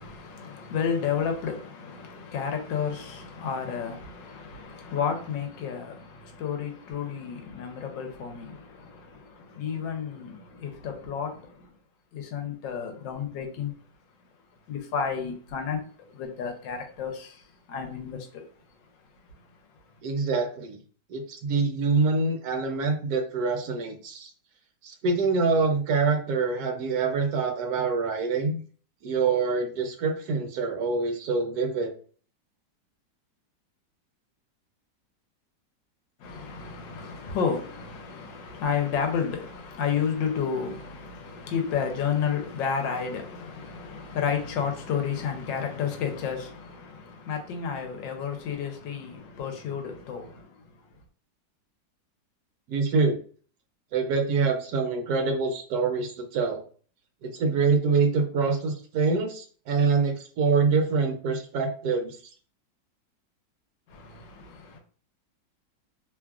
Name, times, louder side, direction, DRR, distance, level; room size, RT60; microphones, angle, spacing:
voice 1, 0.0-11.7 12.1-13.7 14.7-18.5 19.4-19.5 36.2-50.9 63.9-64.8, left 7 dB, 80° left, 1.4 m, -31 dB
voice 2, 20.0-20.8 21.1-24.3 24.8-28.6 29.0-31.9 52.7-53.2 53.9-56.6 57.2-62.2, right 4 dB, 70° right, 1.0 m, -25 dB
3.1 x 2.4 x 2.3 m
omnidirectional pair, 1.9 m